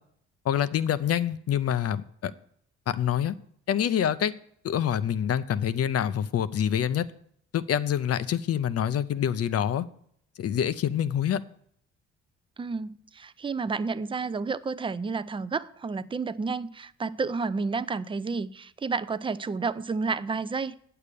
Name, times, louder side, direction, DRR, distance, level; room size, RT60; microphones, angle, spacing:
voice 1, 0.4-2.3 2.9-3.3 3.7-4.3 4.6-7.0 7.5-9.8 10.4-11.4, left 9 dB, 55° left, 0.6 m, -26 dB
voice 2, 12.6-20.8, right 4 dB, 15° right, 0.4 m, -31 dB
8.8 x 6.7 x 6.8 m
cardioid pair, 90°, 30 cm